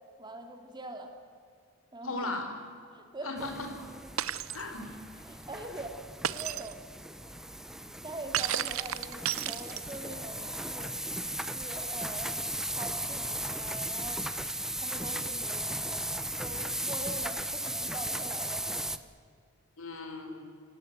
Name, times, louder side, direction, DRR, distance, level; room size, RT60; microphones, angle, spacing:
voice 1, 0.2-1.1 1.9-2.3 2.9-3.5 5.2-6.8 8.0-10.9 11.3-14.2 14.8-16.1 16.4-18.6, right 1 dB, 20° right, 5 dB, 2.5 m, -43 dB
voice 2, 2.0-2.5 3.2-3.7 4.5-5.0 19.8-20.4, left 2 dB, 70° left, 4 dB, 4.4 m, -37 dB
sound 1, 3.4-19.0, right 1 dB, ahead, 0.8 m, -36 dB
Shatter, 4.2-4.6 6.2-6.7 8.3-10.1, right 11 dB, 70° right, 0.7 m, -32 dB
28.0 x 18.5 x 8.1 m, 2.3 s
head